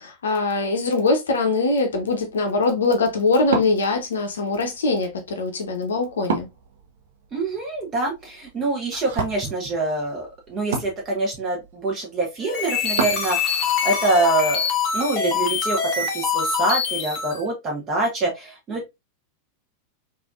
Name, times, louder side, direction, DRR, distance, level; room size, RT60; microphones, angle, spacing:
voice 1, 0.0-6.5, left 3 dB, 65° left, 0.6 m, -22 dB
Wood, 1.8-13.3, right 5 dB, 60° right, 0.6 m, -34 dB
voice 2, 7.3-14.6 14.9-18.9, right 2 dB, 25° right, 0.9 m, -25 dB
sound 1, 12.4-17.4, left 6 dB, 35° left, 0.8 m, -24 dB
3.3 x 2.5 x 2.4 m
figure-of-eight pair, 90°, 0 cm